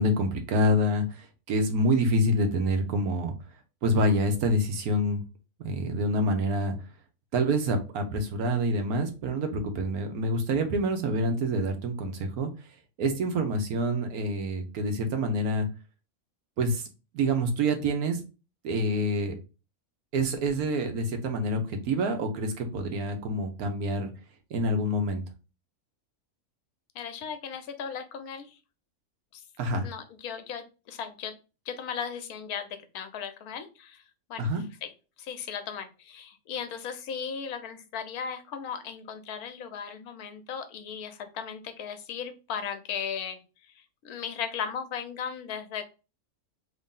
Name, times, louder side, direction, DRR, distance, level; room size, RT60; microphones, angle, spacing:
voice 1, 0.0-3.3 3.8-5.2 5.6-6.7 7.3-12.5 13.0-15.7 16.6-16.9 17.1-18.2 18.6-19.3 20.1-24.1 24.5-25.2 29.6-29.9 34.4-34.6, equal, 80° right, 5 dB, 1.3 m, -27 dB
voice 2, 26.9-28.6 29.3-29.4 29.8-31.3 31.7-32.7 32.9-34.0 34.3-34.5 34.8-34.9 35.2-43.4 43.8-45.8, left 7 dB, 80° left, 8 dB, 1.2 m, -36 dB
3.2 x 2.7 x 3.6 m, 0.31 s
omnidirectional pair, 1.6 m